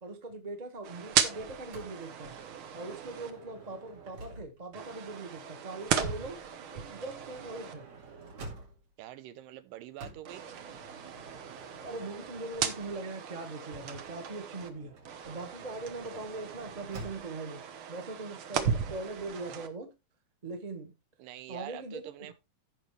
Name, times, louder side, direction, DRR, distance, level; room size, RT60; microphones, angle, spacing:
voice 1, 0.0-2.3 2.7-6.4 6.7-7.8 11.8-14.9 15.2-17.6 17.9-19.9 20.4-20.9 21.5-22.0, right 2 dB, 40° right, 0.5 m, -41 dB
sound 1, 0.8-3.3 4.7-7.7 10.3-14.7 15.0-19.7, right 7 dB, 70° right, 1.2 m, -36 dB
Motor vehicle (road) / Sliding door, 1.7-4.8 5.8-9.0 10.0-13.3 14.5-17.5, right 2 dB, 55° right, 3.3 m, -50 dB
voice 2, 9.0-10.5 21.2-22.3, right 14 dB, 85° right, 2.5 m, -45 dB
15.0 x 5.4 x 3.2 m
omnidirectional pair, 3.8 m